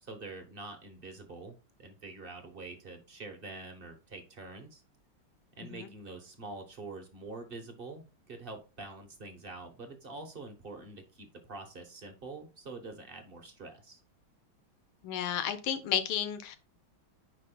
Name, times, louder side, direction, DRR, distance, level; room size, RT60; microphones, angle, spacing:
voice 1, 0.0-4.8 5.6-14.0, right 3 dB, 40° right, 0.8 m, -45 dB
voice 2, 15.0-16.6, left 9 dB, 75° left, 1.7 m, -32 dB
9.4 x 5.1 x 2.2 m
omnidirectional pair, 2.3 m